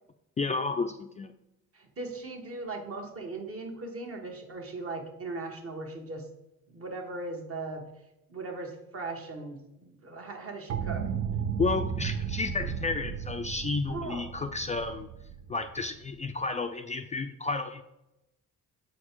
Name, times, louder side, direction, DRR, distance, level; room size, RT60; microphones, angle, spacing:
voice 1, 0.4-1.4 11.6-15.1 15.5-17.8, left 4 dB, 25° left, 7 dB, 0.3 m, -31 dB
voice 2, 1.7-6.3 6.7-7.9 8.3-11.1 13.9-14.2, right 3 dB, 50° right, 2 dB, 1.4 m, -38 dB
sound 1, 10.7-16.4, right 7 dB, 65° right, 0.6 m, -34 dB
6.9 x 4.3 x 4.5 m, 0.90 s
cardioid pair, 90°, 30 cm